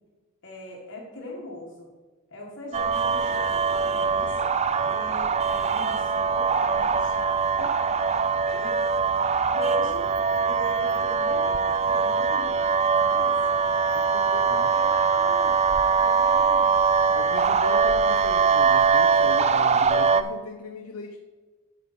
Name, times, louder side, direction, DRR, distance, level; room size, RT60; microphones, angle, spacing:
voice 1, 0.4-1.9 2.3-4.4 4.8-7.9 8.5-8.8 9.6-10.1 10.4-13.5 14.8-15.6 16.0-16.8, left 1 dB, 55° left, -2 dB, 1.9 m, -40 dB
sound 1, 2.7-20.2, right 5 dB, 30° right, 0.4 m, -22 dB
voice 2, 14.1-14.8 17.1-21.2, left 3 dB, 90° left, 3 dB, 0.8 m, -37 dB
9.6 x 6.9 x 4.2 m, 1.3 s
head